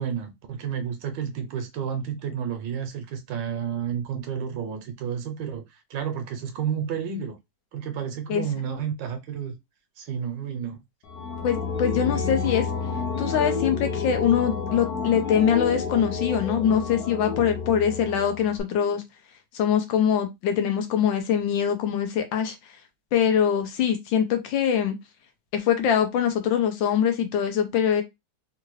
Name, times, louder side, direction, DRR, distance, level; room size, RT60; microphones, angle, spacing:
voice 1, 0.0-7.4 7.7-9.5 10.0-10.8, right 8 dB, 75° right, 1.2 m, -31 dB
sound 1, 11.1-18.6, left 5 dB, 60° left, 1.2 m, -30 dB
voice 2, 11.4-12.7 13.2-19.0 19.5-22.6 23.1-25.0 25.5-28.0, left 8 dB, 75° left, 1.4 m, -23 dB
3.7 x 2.4 x 3.1 m
omnidirectional pair, 2.2 m